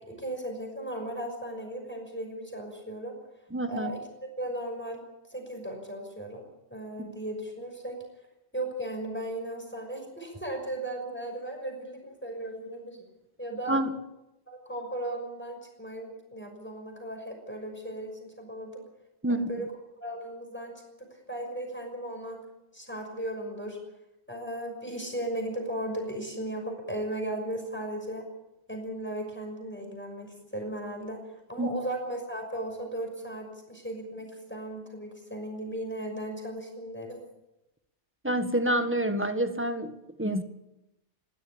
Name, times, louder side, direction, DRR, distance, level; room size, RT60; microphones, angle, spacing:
voice 1, 0.1-3.1 3.7-5.0 5.3-6.4 6.7-8.0 8.5-13.0 13.4-13.8 14.5-18.8 19.5-19.7 20.0-20.7 21.1-22.4 22.7-23.8 24.3-28.2 28.7-31.2 31.5-37.2, right 1 dB, 10° left, 2 dB, 6.0 m, -36 dB
voice 2, 3.5-3.9 7.0-7.1 13.7-13.9 19.2-19.5 31.6-31.7 38.2-40.4, right 1 dB, 10° right, 8 dB, 1.6 m, -28 dB
23.0 x 16.5 x 8.7 m, 0.91 s
omnidirectional pair, 1.2 m